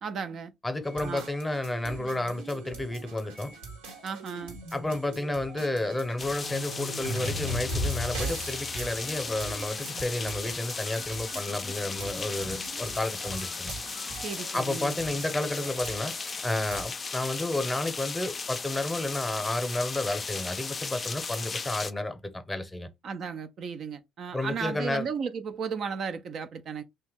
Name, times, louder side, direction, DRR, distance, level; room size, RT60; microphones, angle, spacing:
voice 1, 0.0-0.5 1.0-1.3 4.0-4.6 14.2-14.9 23.0-26.8, right 6 dB, 60° right, 0.4 m, -34 dB
voice 2, 0.6-3.5 4.7-13.7 14.5-16.1 16.4-22.9 24.3-25.1, left 2 dB, 15° left, 0.7 m, -31 dB
sound 1, 0.8-16.8, right 1 dB, 90° right, 1.2 m, -39 dB
sound 2, 6.2-21.9, left 4 dB, 35° left, 0.3 m, -36 dB
2.8 x 2.2 x 3.3 m
hypercardioid pair, 60°, 0 cm